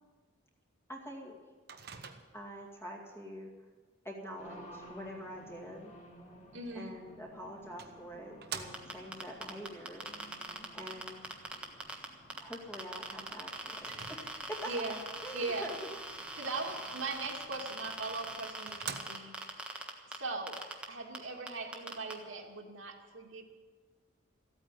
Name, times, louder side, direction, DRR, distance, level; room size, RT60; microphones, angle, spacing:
voice 1, 0.9-1.4 2.3-3.5 4.0-5.9 6.7-10.0 10.7-11.3 12.4-14.8 15.2-15.8 16.1-16.2, equal, 10° left, 0 dB, 2.3 m, -45 dB
Microwave oven, 1.7-2.6 6.9-7.0 7.8-9.2 13.8-14.7 17.8-17.9 18.3-18.4 18.7-19.5, right 6 dB, 50° right, 1.1 m, -45 dB
Race car auto racing, 4.4-18.4, equal, 35° left, 2.6 m, -56 dB
voice 2, 6.5-7.0 14.7-15.0 15.3-15.7 16.4-19.3 20.1-20.6 20.9-23.4, right 3 dB, 80° right, 0 dB, 2.4 m, -39 dB
sound 1, 8.7-12.1 12.3-20.2 20.5-20.8 21.1-21.2 21.5-22.1, right 1 dB, 5° right, 1.4 m, -41 dB
15.0 x 9.0 x 9.3 m, 1.4 s
head